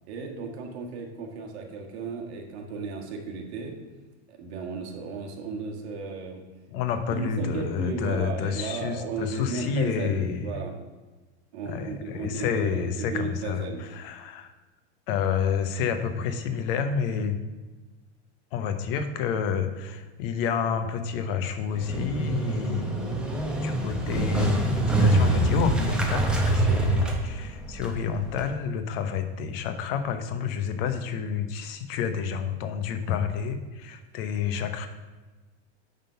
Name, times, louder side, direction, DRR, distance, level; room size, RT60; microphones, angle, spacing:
voice 1, 0.1-3.7 4.3-6.4 7.1-10.7 11.5-13.9, right 4 dB, 70° right, 1 dB, 1.6 m, -35 dB
voice 2, 6.7-10.5 11.7-14.5 15.1-17.4 18.5-22.9 23.6-34.9, left 7 dB, 55° left, 8 dB, 0.9 m, -29 dB
Motorcycle, 21.7-28.5, right 2 dB, 5° right, 0.7 m, -25 dB
9.1 x 3.8 x 5.6 m, 1.2 s
supercardioid pair, 160°, 34 cm